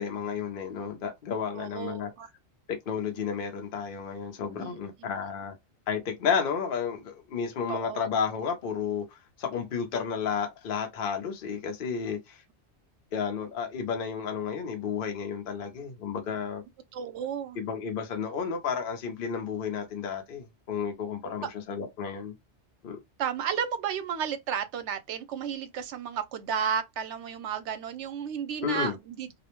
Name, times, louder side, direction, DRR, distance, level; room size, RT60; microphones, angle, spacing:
voice 1, 0.0-2.1 2.7-5.5 5.9-9.1 9.4-12.4 13.1-16.6 17.6-22.3 22.8-23.0 28.6-28.9, left 6 dB, 55° left, 0.8 m, -32 dB
voice 2, 1.5-2.3 4.6-5.1 7.7-8.0 16.9-17.6 21.4-21.5 23.2-29.3, right 8 dB, 80° right, 0.9 m, -33 dB
2.4 x 2.0 x 2.9 m
omnidirectional pair, 1.2 m